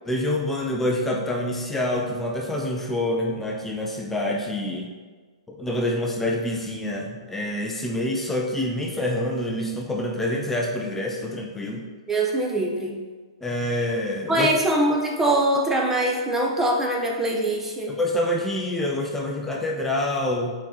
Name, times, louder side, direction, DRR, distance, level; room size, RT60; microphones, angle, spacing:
voice 1, 0.1-4.9 5.5-11.9 13.4-14.5 17.9-20.5, left 1 dB, 10° left, -1 dB, 0.6 m, -26 dB
voice 2, 12.1-13.0 14.3-17.9, right 1 dB, 10° right, 0 dB, 1.0 m, -23 dB
5.8 x 4.4 x 3.9 m, 1.4 s
figure-of-eight pair, 115°, 3 cm